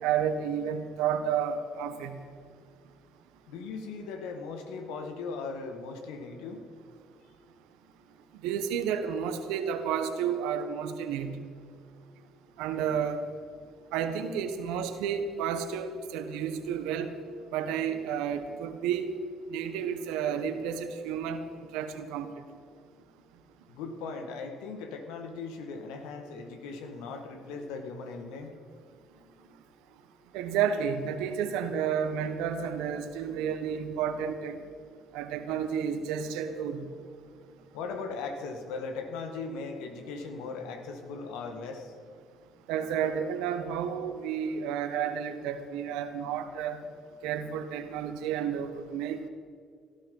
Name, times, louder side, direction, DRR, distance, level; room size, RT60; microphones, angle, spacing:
voice 1, 0.0-2.2 8.4-11.4 12.6-13.2 13.9-17.1 17.5-19.1 19.5-21.4 21.7-22.3 30.3-34.6 35.1-36.9 42.7-46.8 47.2-49.3, right 8 dB, 80° right, 8 dB, 1.3 m, -31 dB
voice 2, 3.5-6.6 23.7-28.6 37.7-41.9, left 4 dB, 80° left, 6 dB, 1.9 m, -38 dB
18.0 x 12.0 x 5.6 m, 2.1 s
hypercardioid pair, 60°, 0 cm